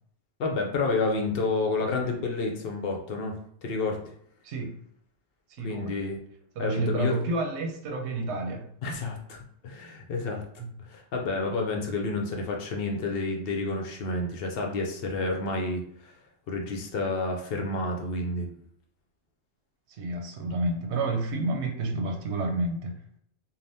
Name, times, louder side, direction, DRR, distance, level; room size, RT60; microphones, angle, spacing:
voice 1, 0.4-4.0 5.6-6.2 6.6-7.2 8.8-9.4 9.6-10.4 10.9-16.1 16.5-18.5, left 3 dB, 65° left, 2 dB, 0.7 m, -30 dB
voice 2, 5.6-5.9 6.6-8.7 19.9-23.0, right 2 dB, 75° right, 3 dB, 0.9 m, -30 dB
3.3 x 2.3 x 2.7 m, 0.67 s
omnidirectional pair, 1.2 m